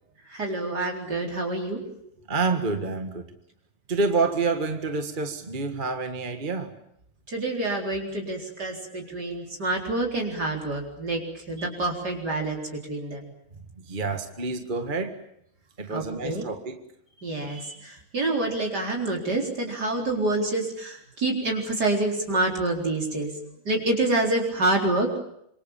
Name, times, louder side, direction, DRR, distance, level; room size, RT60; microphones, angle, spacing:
voice 1, 0.3-1.8 7.3-13.3 15.9-16.4 17.2-23.3 23.6-25.2, right 2 dB, 55° right, 4.9 m, -27 dB
voice 2, 2.3-3.3 3.9-6.7 8.6-9.1 13.8-15.2 15.8-16.8, right 4 dB, 25° right, 1.8 m, -28 dB
26.5 x 25.5 x 7.4 m
omnidirectional pair, 2.2 m